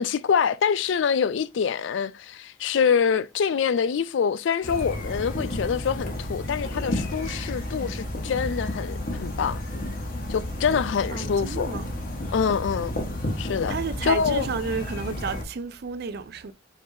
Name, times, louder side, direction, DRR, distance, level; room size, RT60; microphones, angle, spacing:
voice 1, 0.0-9.6 10.3-11.7 12.3-12.9 13.4-13.7 14.0-14.5, left 6 dB, 70° left, 0.4 m, -25 dB
sound 1, 4.6-15.4, left 1 dB, 50° left, 1.2 m, -32 dB
voice 2, 11.1-11.9 13.7-16.5, right 5 dB, 55° right, 0.4 m, -31 dB
4.7 x 3.5 x 2.6 m
head